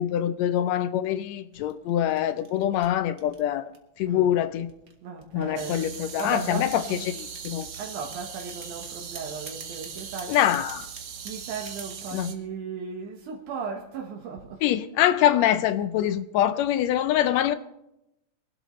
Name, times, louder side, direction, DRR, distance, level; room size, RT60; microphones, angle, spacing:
voice 1, 0.0-3.7 4.0-4.7 5.3-7.1 7.4-7.7 10.3-10.9 12.1-12.3 14.6-17.5, left 11 dB, 75° left, 1.7 m, -24 dB
sound 1, 1.5-4.0 4.7-7.8 8.1-8.7 9.2-12.1, right 5 dB, 40° right, 1.4 m, -46 dB
voice 2, 4.1-4.4 5.0-7.1 7.8-10.5 11.2-14.6 16.4-16.5, right 5 dB, 80° right, 2.7 m, -36 dB
Belize - Jungle at Night, 5.6-12.3, right 7 dB, 55° right, 1.7 m, -40 dB
23.5 x 12.0 x 3.1 m
omnidirectional pair, 3.5 m